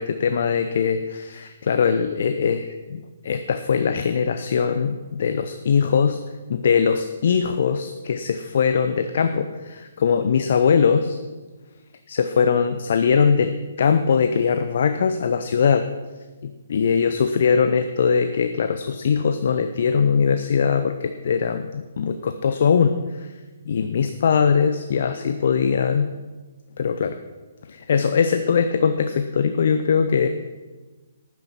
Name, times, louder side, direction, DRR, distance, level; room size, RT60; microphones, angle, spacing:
voice 1, 0.0-6.2 6.5-11.2 12.1-15.9 16.7-23.3 23.7-26.1 26.8-27.2 27.7-30.3, left 6 dB, 55° left, 9 dB, 0.7 m, -21 dB
12.5 x 9.3 x 6.1 m, 1.3 s
figure-of-eight pair, 130°, 0 cm